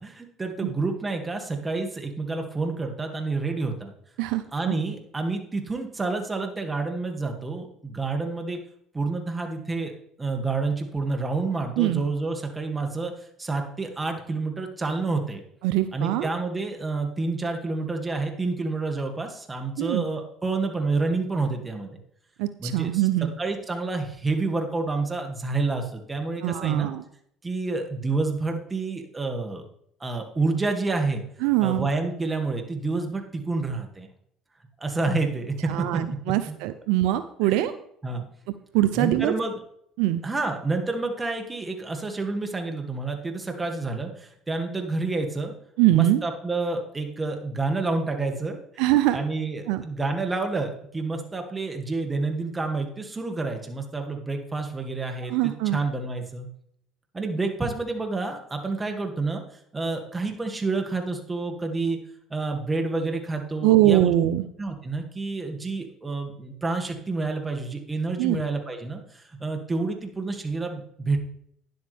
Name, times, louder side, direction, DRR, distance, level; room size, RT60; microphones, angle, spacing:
voice 1, 0.0-3.9 4.5-8.6 8.9-9.9 10.2-13.1 13.4-15.4 15.9-21.9 22.6-26.9 27.4-29.6 30.0-31.2 31.6-34.1 34.8-36.0 36.5-36.6 37.4-37.7 38.0-38.3 38.9-39.6 40.2-45.5 45.9-48.6 49.1-56.5 57.1-59.4 59.7-62.0 62.3-64.1 64.6-71.2, right 3 dB, 20° right, 4 dB, 2.3 m, -29 dB
voice 2, 4.2-4.7 11.8-12.0 15.6-16.3 19.8-20.1 22.4-23.3 26.4-27.0 31.4-31.9 35.7-37.7 38.7-39.3 40.0-40.2 45.8-46.2 48.8-49.2 49.7-49.8 55.3-55.8 63.6-64.4 68.2-68.4, right 14 dB, 75° right, 11 dB, 0.5 m, -22 dB
12.0 x 10.5 x 3.5 m, 0.70 s
supercardioid pair, 75°, 0 cm